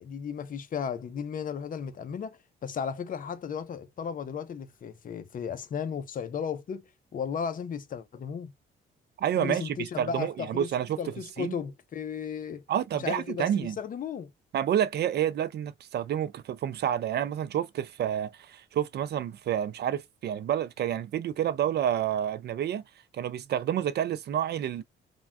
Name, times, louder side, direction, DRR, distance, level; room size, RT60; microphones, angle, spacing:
voice 1, 0.0-8.5 9.4-10.7 11.0-12.6 13.0-14.3, left 7 dB, 45° left, 0.6 m, -35 dB
voice 2, 9.2-11.0 11.4-11.5 12.7-13.8 14.5-22.8 23.1-24.8, right 10 dB, 55° right, 0.4 m, -29 dB
3.4 x 2.2 x 2.3 m
cardioid pair, 90°, 20 cm